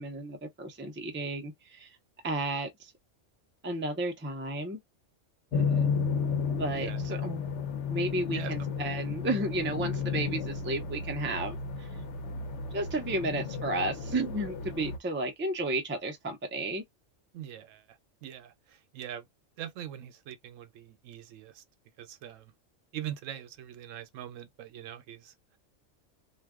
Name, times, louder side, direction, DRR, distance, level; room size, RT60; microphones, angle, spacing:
voice 1, 0.0-2.0 2.2-2.9 3.6-4.8 6.6-7.4 7.9-11.9 12.7-16.8, right 2 dB, 20° right, 0.3 m, -33 dB
sound 1, 5.5-15.0, left 6 dB, 70° left, 0.9 m, -33 dB
voice 2, 5.5-5.9 6.7-7.0 8.3-8.7 17.3-19.3 19.6-21.6 22.0-22.5 22.9-25.3, right 11 dB, 85° right, 1.0 m, -42 dB
2.5 x 2.2 x 3.5 m
omnidirectional pair, 1.3 m